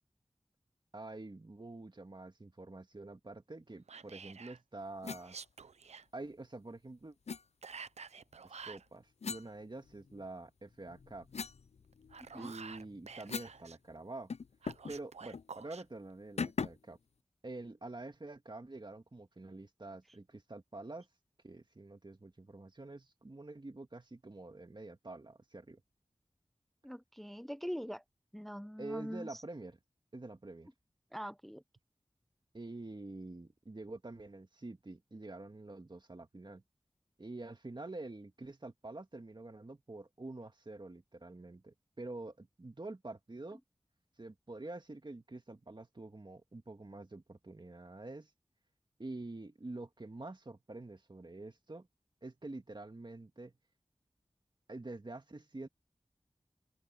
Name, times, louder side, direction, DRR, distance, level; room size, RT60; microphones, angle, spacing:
voice 1, 0.9-5.4 6.1-7.2 8.4-11.3 12.4-14.3 14.9-17.0 17.4-21.1 21.4-25.8 28.8-29.8 30.1-30.7 32.5-36.6 37.2-43.6 44.2-48.3 49.0-51.9 52.2-53.5 54.7-55.7, right 2 dB, 45° right, 2.1 m, -47 dB
Whispering, 3.9-4.6 5.2-6.1 7.6-8.9 11.9-13.8 14.6-15.8, right 5 dB, 90° right, 0.5 m, -49 dB
sound 1, 5.0-5.3 7.3-7.4 9.2-10.3 10.7-13.6 13.9-14.0 14.3-15.0 15.3-15.5 16.4-16.9, left 5 dB, 75° left, 0.5 m, -41 dB
voice 2, 26.8-28.0 28.3-29.4 31.1-31.6, equal, ahead, 0.7 m, -42 dB
open air
wide cardioid pair, 45°, 11 cm